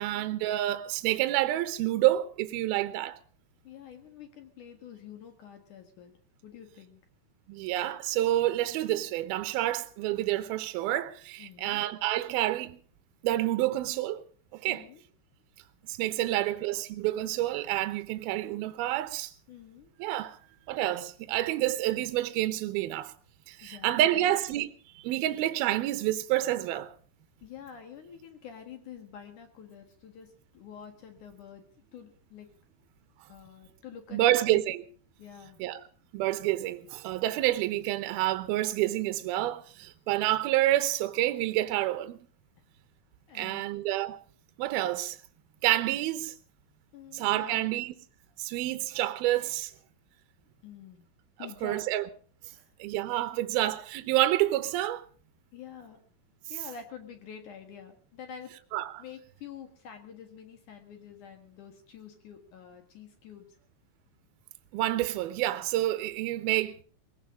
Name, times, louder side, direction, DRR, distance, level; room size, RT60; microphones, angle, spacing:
voice 1, 0.0-3.2 7.5-12.8 13.2-14.2 14.5-14.8 15.9-19.3 20.0-20.4 20.7-23.1 23.5-24.7 25.0-26.9 34.1-34.8 35.6-35.8 36.1-42.2 43.3-44.2 44.6-45.2 45.6-46.3 47.1-47.9 48.4-49.7 51.4-52.1 52.8-55.0 58.7-59.0 64.7-66.8, right 15 dB, 75° right, 2.4 m, -28 dB
voice 2, 3.6-6.2 6.4-7.0 11.4-11.8 14.7-15.0 16.2-16.5 19.5-19.9 23.6-24.4 27.4-31.6 31.9-32.5 33.3-34.6 35.2-35.6 43.3-43.7 46.9-47.7 50.6-51.1 51.4-51.9 52.5-52.7 55.5-56.0 56.5-58.5 59.0-63.5, left 7 dB, 60° left, 2.4 m, -47 dB
21.5 x 16.5 x 3.8 m
omnidirectional pair, 5.4 m